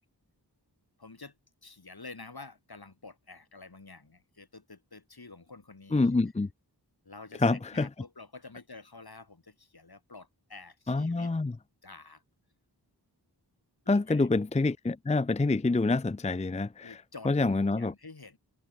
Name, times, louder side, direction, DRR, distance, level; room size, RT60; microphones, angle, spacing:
voice 1, 1.0-1.4 1.6-6.1 7.0-11.3 11.8-12.2 13.8-14.3 16.8-17.3 17.7-18.4, left 3 dB, 65° left, 6.6 m, -49 dB
voice 2, 5.9-6.5 7.4-7.9 10.9-11.5 13.9-17.0 17.3-17.9, left 3 dB, 15° left, 0.5 m, -26 dB
wide cardioid pair, 55°, 41 cm